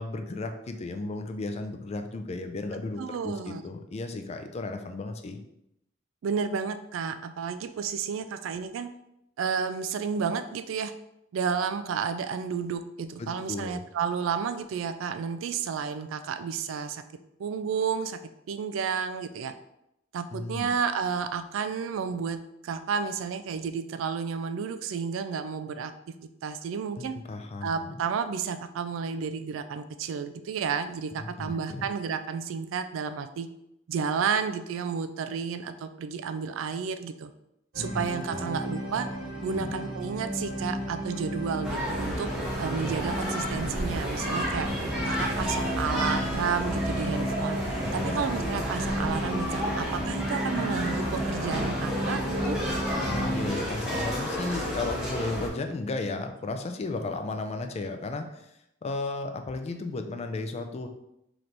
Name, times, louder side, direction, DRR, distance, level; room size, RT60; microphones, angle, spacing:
voice 1, 0.0-5.4 13.2-13.8 20.3-20.7 27.0-28.0 31.2-31.8 37.8-38.0 38.3-38.5 39.5-39.8 47.8-48.2 53.0-60.9, left 3 dB, 35° left, 6 dB, 0.4 m, -34 dB
voice 2, 3.0-3.6 6.2-8.9 9.4-10.9 11.3-17.0 17.4-18.2 18.5-19.5 20.1-26.1 26.4-27.2 27.6-33.5 33.9-37.3 37.8-39.1 39.4-42.3 42.6-44.7 45.0-47.6 47.9-52.6, right 6 dB, 85° right, 10 dB, 0.3 m, -31 dB
sound 1, 37.7-53.5, right 1 dB, 65° right, 1.0 m, -33 dB
sound 2, 41.6-55.5, equal, 5° right, 0.9 m, -32 dB
3.2 x 3.0 x 3.9 m, 0.83 s
head